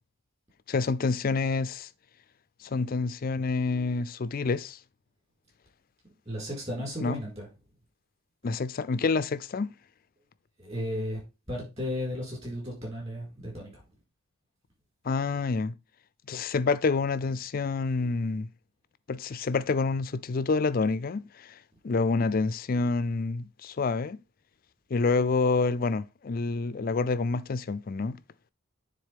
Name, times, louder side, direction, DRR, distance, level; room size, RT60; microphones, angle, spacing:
voice 1, 0.7-1.9 2.6-4.8 7.0-7.2 8.4-9.7 15.0-15.7 16.3-18.5 19.1-21.5 21.8-24.2 24.9-28.2, left 4 dB, 40° left, 0.4 m, -28 dB
voice 2, 6.2-7.5 10.6-11.2 11.5-13.8, equal, 30° right, 4.6 m, -34 dB
9.4 x 3.9 x 3.5 m
head